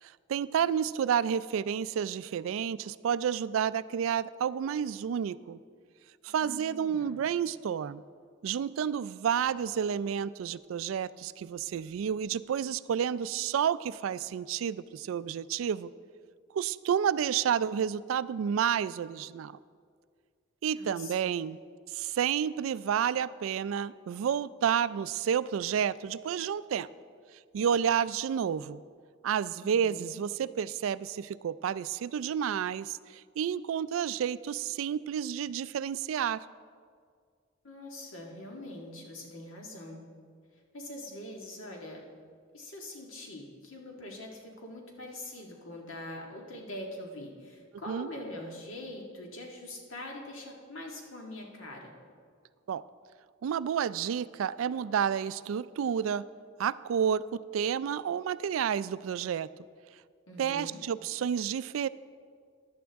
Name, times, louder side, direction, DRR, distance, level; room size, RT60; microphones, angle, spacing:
voice 1, 0.0-5.6 6.2-8.0 8.4-15.9 16.5-19.6 20.6-21.6 21.9-26.9 27.5-28.8 29.2-36.5 47.9-48.1 52.7-52.8 53.4-56.2 56.6-59.5 60.4-61.9, right 8 dB, 85° right, 17 dB, 0.3 m, -30 dB
voice 2, 6.3-7.2 20.7-21.4 29.6-30.2 37.6-40.0 40.7-42.0 42.5-51.9 60.3-60.8, left 1 dB, 85° left, 0 dB, 1.8 m, -43 dB
14.5 x 11.0 x 3.5 m, 2.1 s
head